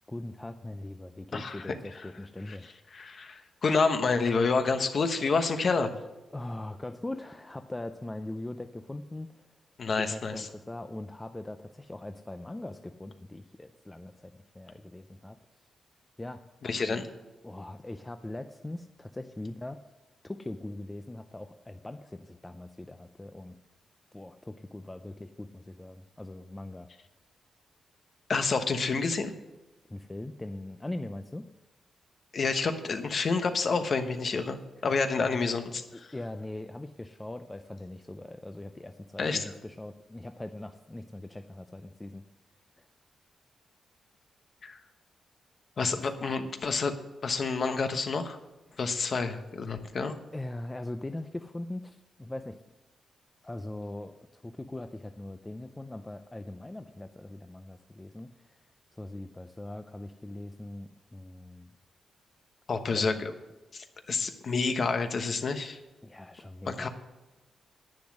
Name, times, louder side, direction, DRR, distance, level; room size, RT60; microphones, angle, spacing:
voice 1, 0.1-2.7 6.3-9.4 9.9-15.4 16.2-16.4 16.8-16.9 17.4-19.8 20.2-23.6 24.1-26.9 29.9-31.5 35.2-35.4 36.1-42.2 42.8-42.9 48.7-48.8 50.3-52.6 53.4-58.6 58.9-61.7 62.9-63.2 66.0-66.9, left 1 dB, 10° left, 7 dB, 0.4 m, -41 dB
voice 2, 1.3-2.0 2.5-2.6 2.9-5.9 9.8-10.5 16.6-17.1 28.3-29.3 32.3-35.8 39.2-39.5 44.6-44.8 45.8-47.0 47.2-48.4 48.8-50.2 62.7-63.3 63.7-65.8 66.7-66.9, left 4 dB, 40° left, 7 dB, 1.1 m, -29 dB
10.5 x 9.7 x 6.3 m, 1.1 s
wide cardioid pair, 170°, 0 cm